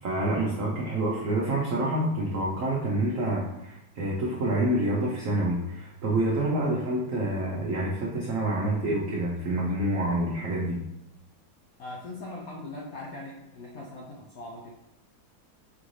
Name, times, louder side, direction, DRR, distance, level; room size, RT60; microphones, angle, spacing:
voice 1, 0.0-10.8, right 1 dB, 85° right, -3 dB, 0.7 m, -27 dB
voice 2, 11.8-14.7, left 2 dB, 80° left, -2 dB, 0.8 m, -40 dB
4.7 x 2.6 x 3.0 m, 0.86 s
omnidirectional pair, 2.2 m